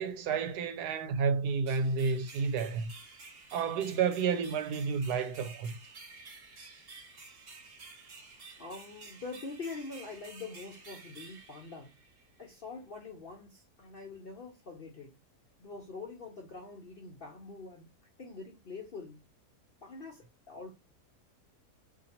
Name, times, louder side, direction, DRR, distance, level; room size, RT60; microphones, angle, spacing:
voice 1, 0.0-2.9 3.5-5.7, right 5 dB, 75° right, 1.1 m, -30 dB
sound 1, 1.7-12.4, right 4 dB, 40° right, 1.1 m, -52 dB
voice 2, 8.6-11.9 12.4-15.2 15.6-17.9 18.2-19.2 19.8-20.7, left 4 dB, 55° left, 0.6 m, -44 dB
2.8 x 2.7 x 4.1 m
omnidirectional pair, 1.7 m